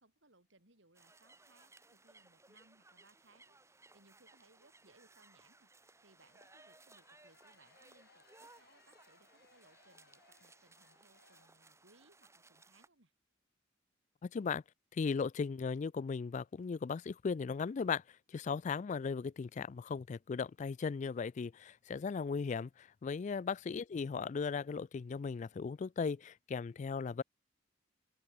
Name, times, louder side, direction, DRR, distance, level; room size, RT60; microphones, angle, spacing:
voice 1, 0.0-13.1, right 2 dB, 75° right, 6.4 m, -68 dB
sound 1, 0.9-12.9, right 3 dB, 15° right, 4.6 m, -63 dB
sound 2, 6.1-12.0, left 5 dB, 55° left, 7.1 m, -69 dB
voice 2, 14.2-14.6 14.9-18.0 18.3-27.2, left 5 dB, 40° left, 0.3 m, -37 dB
open air
head